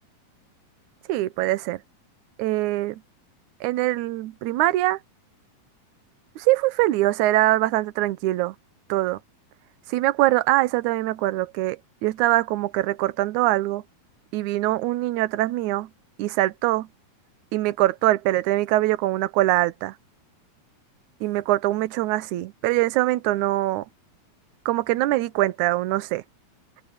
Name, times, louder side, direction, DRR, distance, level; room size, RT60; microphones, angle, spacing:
voice 1, 1.1-1.8 2.4-3.0 3.6-5.0 6.4-8.6 8.9-9.2 9.9-13.8 14.3-15.9 16.2-16.9 17.5-19.9 21.2-23.9 24.7-26.2, right 16 dB, 70° right, 2.0 m, -23 dB
omnidirectional pair, 4.2 m